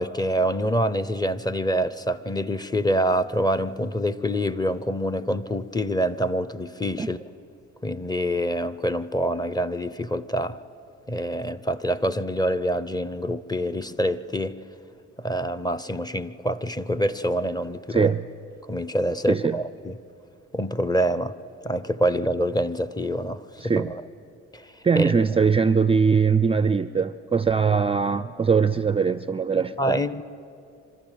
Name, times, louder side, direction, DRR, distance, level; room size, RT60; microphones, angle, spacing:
voice 1, 0.0-7.2 7.8-10.6 11.1-14.6 15.2-18.1 18.7-20.0 20.5-21.3 21.6-23.4 23.8-24.0 24.5-24.7 25.0-25.3 29.8-30.2, equal, 15° left, 0.7 m, -26 dB
voice 2, 17.9-18.2 19.3-19.6 23.6-23.9 24.8-30.0, right 5 dB, 20° right, 0.4 m, -21 dB
26.5 x 12.5 x 9.1 m
cardioid pair, 90°, 30 cm